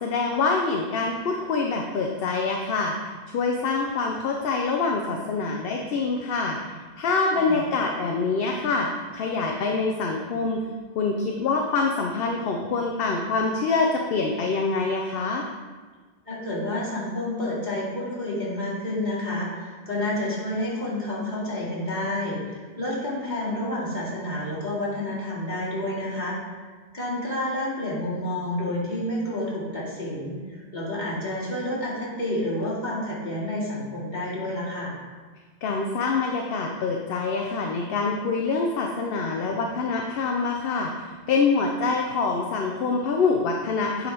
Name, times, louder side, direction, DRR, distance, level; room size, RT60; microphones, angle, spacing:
voice 1, 0.0-10.6 11.0-15.4 35.6-44.1, left 4 dB, 60° left, 2 dB, 0.8 m, -25 dB
voice 2, 7.3-7.6 16.3-26.4 26.9-35.0, left 1 dB, 40° left, -7 dB, 2.4 m, -29 dB
8.5 x 4.0 x 4.5 m, 1.4 s
omnidirectional pair, 1.2 m